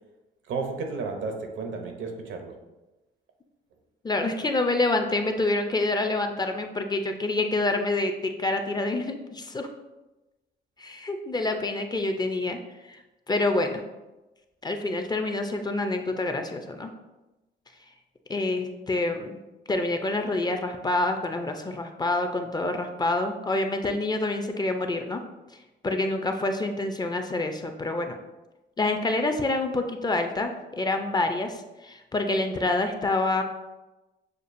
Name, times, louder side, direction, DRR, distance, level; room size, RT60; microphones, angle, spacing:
voice 1, 0.5-2.6, right 4 dB, 75° right, 4 dB, 0.7 m, -32 dB
voice 2, 4.0-9.7 10.8-12.6 12.9-13.8 14.6-16.9 18.3-19.4 19.7-25.2 25.8-28.2 28.8-33.4, left 2 dB, 20° left, 5 dB, 0.4 m, -27 dB
6.5 x 2.3 x 2.5 m, 1.1 s
cardioid pair, 90°, 20 cm